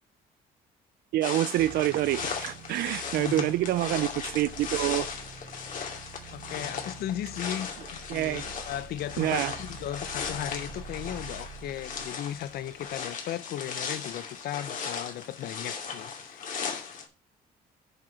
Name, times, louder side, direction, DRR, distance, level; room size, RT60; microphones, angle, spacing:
voice 1, 1.1-5.1 8.1-8.5 9.2-9.5, right 15 dB, 70° right, 0.5 m, -27 dB
sound 1, 1.2-17.1, left 6 dB, 50° left, 2.5 m, -37 dB
sound 2, 1.6-13.1, right 4 dB, 55° right, 2.0 m, -47 dB
voice 2, 3.2-3.5 6.3-16.4, left 11 dB, 65° left, 0.8 m, -36 dB
8.0 x 5.0 x 5.7 m
cardioid pair, 110°, 17 cm